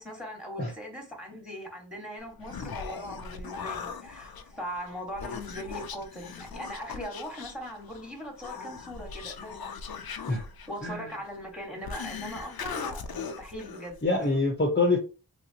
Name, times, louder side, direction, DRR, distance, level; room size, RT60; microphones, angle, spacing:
voice 1, 0.0-9.6 10.7-14.0, equal, ahead, 1.4 m, -40 dB
Human voice, 2.2-14.4, left 5 dB, 60° left, 0.5 m, -40 dB
voice 2, 14.0-15.0, left 2 dB, 25° left, 0.7 m, -25 dB
3.1 x 2.8 x 2.8 m
wide cardioid pair, 60°, 42 cm